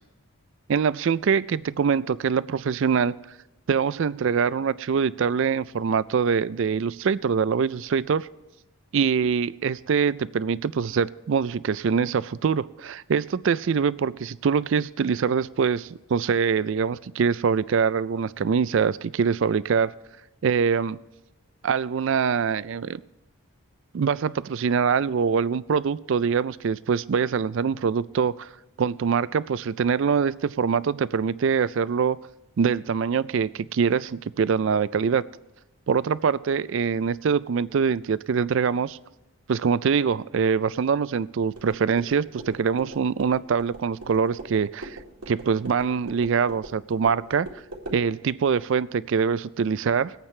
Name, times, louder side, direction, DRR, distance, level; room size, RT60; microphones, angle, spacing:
voice 1, 0.7-3.2 3.7-8.3 8.9-19.9 20.4-21.0 21.6-23.0 23.9-28.5 28.8-32.2 32.6-35.2 35.9-39.0 39.5-45.0 45.3-47.5 47.9-50.1, right 6 dB, 55° right, 18 dB, 0.3 m, -24 dB
sound 1, 41.5-48.0, right 1 dB, 90° right, 2.0 m, -42 dB
22.5 x 8.8 x 3.2 m, 0.95 s
head